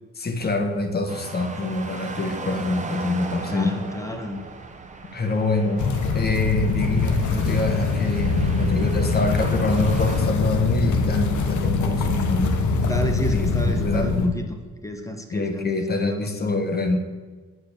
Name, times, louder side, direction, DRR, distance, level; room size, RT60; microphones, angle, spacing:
voice 1, 0.2-3.7 5.1-5.8 6.1-12.6 13.3-14.4 15.3-17.0, left 2 dB, 30° left, 6 dB, 1.2 m, -25 dB
sound 1, 1.1-10.2, right 3 dB, 25° right, 1.0 m, -38 dB
voice 2, 3.5-4.4 12.7-14.5 14.8-16.5, left 1 dB, 10° left, 5 dB, 1.1 m, -30 dB
sound 2, 5.8-14.3, left 4 dB, 75° left, 1.1 m, -23 dB
8.2 x 4.7 x 7.2 m, 1.4 s
cardioid pair, 90°, 30 cm